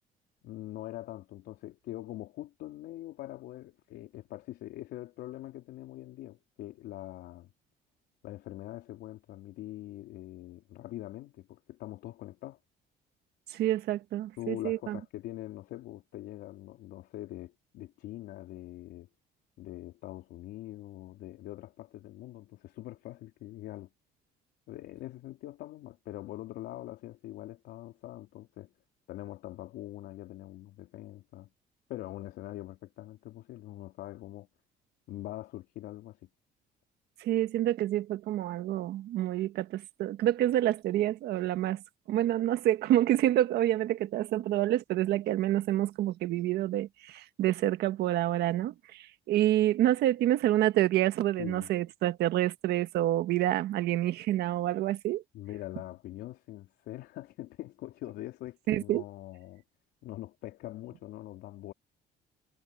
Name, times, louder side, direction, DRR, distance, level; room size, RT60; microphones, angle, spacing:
voice 1, 0.4-7.5 8.2-12.6 14.4-19.1 19.6-23.9 24.7-28.7 29.1-31.5 31.9-34.5 35.1-36.3 51.4-51.7 55.3-59.6 60.0-61.7, left 15 dB, 80° left, 4.0 m, -43 dB
voice 2, 13.5-15.0 37.2-41.8 42.1-55.2 58.7-59.0, right 13 dB, 75° right, 1.6 m, -28 dB
cardioid pair, 110°, 17 cm